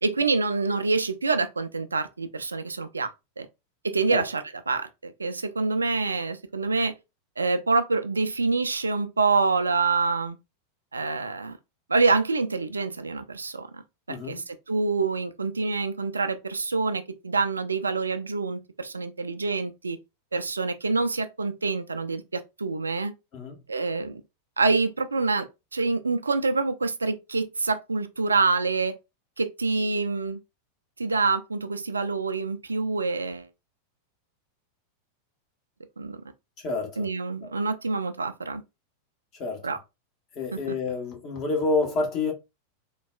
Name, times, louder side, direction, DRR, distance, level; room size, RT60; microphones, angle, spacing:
voice 1, 0.0-3.1 3.4-3.5 3.8-6.9 7.4-10.4 10.9-11.6 11.9-13.8 14.1-20.0 20.3-23.1 23.7-24.2 24.6-28.9 29.4-30.4 31.0-33.5 36.0-36.2 37.0-38.6 39.6-39.8, right 4 dB, 75° right, 0.3 m, -26 dB
voice 2, 14.1-14.4 23.3-23.6 36.6-37.1 37.4-37.5 39.4-39.8 40.3-42.3, left 3 dB, 35° left, 0.9 m, -28 dB
3.7 x 2.2 x 2.2 m
figure-of-eight pair, 90°, 0 cm